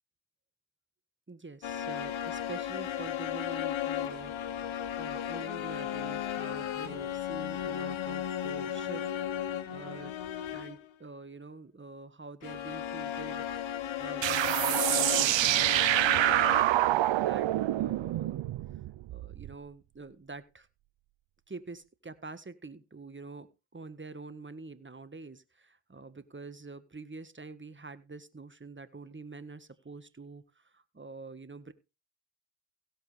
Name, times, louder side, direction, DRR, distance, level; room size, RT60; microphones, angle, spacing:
voice 1, 1.3-4.7 5.0-10.1 10.5-13.4 14.0-17.5 17.8-18.5 19.1-20.7 21.5-31.7, right 3 dB, 25° right, 12 dB, 1.6 m, -46 dB
sound 1, 1.6-10.9 12.4-16.6, left 10 dB, 85° left, 1.0 m, -35 dB
sound 2, 14.2-19.5, right 14 dB, 75° right, 0.5 m, -26 dB
16.5 x 7.8 x 3.5 m, 0.28 s
cardioid pair, 45°, 46 cm